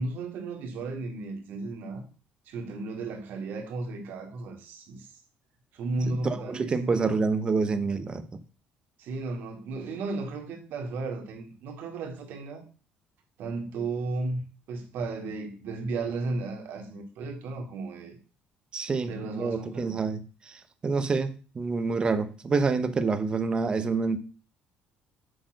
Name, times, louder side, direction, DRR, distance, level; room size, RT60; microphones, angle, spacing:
voice 1, 0.0-2.1 2.5-5.1 5.7-7.2 9.0-12.6 13.4-14.4 14.7-18.2 19.0-20.0, right 3 dB, 65° right, 2.2 m, -34 dB
voice 2, 6.0-8.3 18.7-20.2 20.8-21.3 21.6-24.2, right 4 dB, 25° right, 0.8 m, -27 dB
7.8 x 4.3 x 6.4 m
cardioid pair, 145°, 4 cm